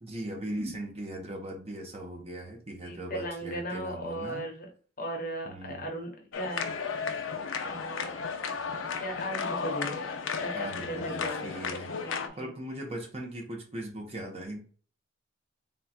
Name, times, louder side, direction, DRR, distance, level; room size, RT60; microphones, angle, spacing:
voice 1, 0.0-4.4 5.5-5.9 8.5-8.6 10.5-12.0 12.4-14.6, right 1 dB, 30° right, 1 dB, 0.8 m, -39 dB
voice 2, 2.8-4.7 5.0-6.7 7.6-8.2 8.9-10.1 10.4-12.5, equal, 45° left, 2 dB, 0.9 m, -37 dB
sound 1, 6.3-12.3, left 5 dB, 80° left, 0.5 m, -34 dB
3.8 x 2.4 x 4.2 m, 0.42 s
head